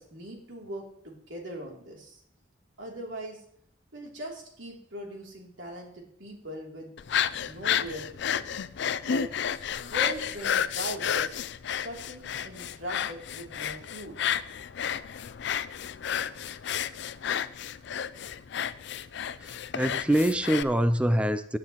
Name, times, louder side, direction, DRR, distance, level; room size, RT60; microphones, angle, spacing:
voice 1, 0.0-2.2 2.8-3.4 3.9-6.9 7.4-8.5 9.0-9.3 9.8-11.3 11.8-14.3, equal, 85° right, -1 dB, 3.0 m, -40 dB
sound 1, 7.0-20.6, left 9 dB, 65° left, 0.4 m, -31 dB
voice 2, 19.4-21.6, right 1 dB, 5° right, 11 dB, 0.4 m, -25 dB
17.0 x 9.6 x 3.0 m, 0.65 s
head